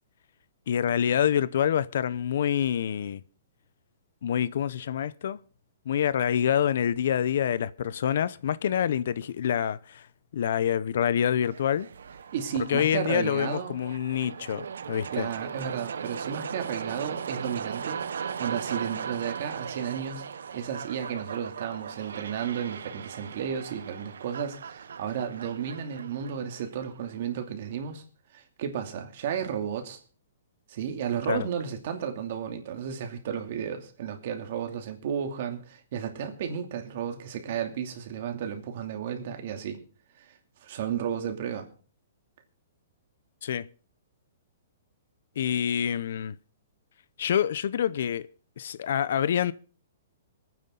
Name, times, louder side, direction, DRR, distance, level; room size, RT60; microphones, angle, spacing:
voice 1, 0.7-3.2 4.2-5.4 5.9-10.1 10.3-11.9 12.7-15.3 31.3-31.5 43.4-43.7 45.4-46.4 47.2-48.3 48.6-49.5, left 9 dB, 60° left, 0.6 m, -26 dB
sound 1, 11.4-27.4, right 7 dB, 85° right, 0.9 m, -38 dB
voice 2, 12.3-13.8 15.1-28.0 28.3-30.0 30.7-39.8 40.2-40.3 40.6-41.7, right 8 dB, 45° right, 2.7 m, -33 dB
25.5 x 9.5 x 3.8 m
hypercardioid pair, 165°, 0 cm